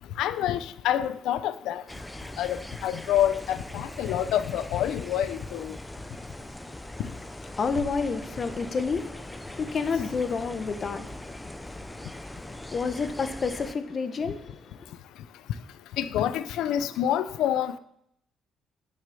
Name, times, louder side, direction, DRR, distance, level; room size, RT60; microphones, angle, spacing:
voice 1, 0.2-1.8 2.4-5.7 16.0-17.8, left 11 dB, 90° left, 0.6 m, -27 dB
sound 1, 1.9-13.7, left 1 dB, 5° left, 0.7 m, -41 dB
voice 2, 7.5-14.9, left 5 dB, 45° left, 1.4 m, -31 dB
sound 2, 7.7-9.4, right 8 dB, 70° right, 0.8 m, -44 dB
10.5 x 6.6 x 6.9 m
cardioid pair, 90°, 0 cm